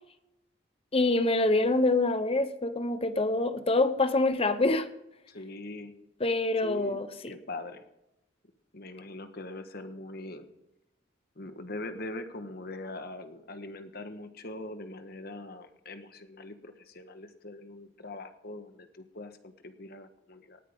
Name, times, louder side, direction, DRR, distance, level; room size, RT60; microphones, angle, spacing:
voice 1, 0.9-4.9 6.2-7.3, left 2 dB, 30° left, 1.0 m, -26 dB
voice 2, 5.3-5.9 6.6-7.0 7.3-7.8 8.7-10.5 11.4-20.6, left 2 dB, 50° left, 1.4 m, -42 dB
18.5 x 9.4 x 3.7 m
head